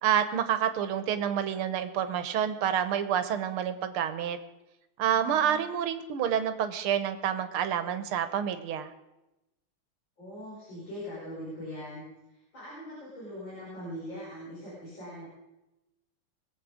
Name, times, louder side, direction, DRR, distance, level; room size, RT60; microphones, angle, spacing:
voice 1, 0.0-4.4 5.0-8.9, right 9 dB, 80° right, 10 dB, 1.9 m, -28 dB
voice 2, 5.0-5.6 10.2-15.3, equal, 60° left, -8 dB, 6.2 m, -42 dB
22.0 x 7.9 x 5.0 m, 0.97 s
omnidirectional pair, 2.4 m